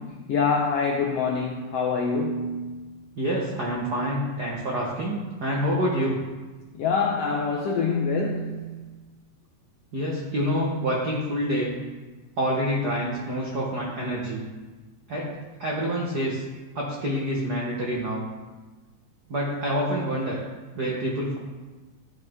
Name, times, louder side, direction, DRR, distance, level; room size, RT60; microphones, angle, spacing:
voice 1, 0.3-2.8 6.8-8.8, left 4 dB, 80° left, 1 dB, 1.3 m, -25 dB
voice 2, 3.2-6.2 9.9-11.8 12.4-14.5 15.1-16.4 16.7-18.2 19.3-20.4 20.7-21.4, equal, 85° right, -3 dB, 0.8 m, -27 dB
13.0 x 5.8 x 3.6 m, 1.3 s
omnidirectional pair, 3.7 m